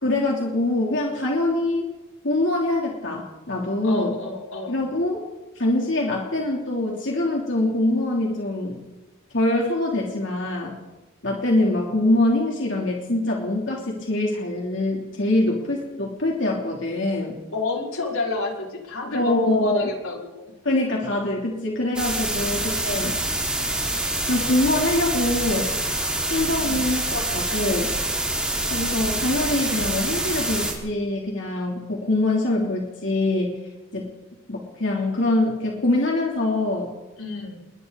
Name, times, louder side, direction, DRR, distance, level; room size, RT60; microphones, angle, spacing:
voice 1, 0.0-1.9 2.2-4.1 4.7-5.2 5.5-8.8 9.3-10.8 11.2-17.4 19.1-19.9 20.6-23.2 24.3-25.7 26.3-28.0 28.7-33.6 33.9-34.1 34.5-36.9, left 2 dB, 55° left, -2 dB, 3.3 m, -24 dB
voice 2, 3.8-4.8 17.5-20.5 26.6-26.9 37.2-37.6, left 3 dB, 85° left, -2 dB, 5.4 m, -30 dB
sound 1, 22.0-30.7, right 1 dB, 5° right, 4.8 m, -26 dB
29.5 x 22.0 x 4.1 m, 1.1 s
head